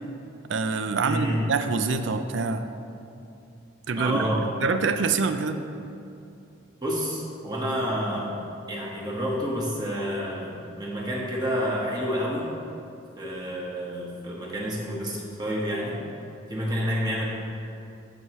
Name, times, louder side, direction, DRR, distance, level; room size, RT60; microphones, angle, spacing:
voice 1, 0.5-2.7 3.9-4.3 4.6-5.6, right 4 dB, 70° right, 9 dB, 0.5 m, -25 dB
voice 2, 1.0-1.4 3.9-4.5 6.8-8.3 8.7-12.5 13.2-16.0 16.5-17.3, equal, 20° right, -3 dB, 1.3 m, -29 dB
14.5 x 5.6 x 3.1 m, 2.7 s
head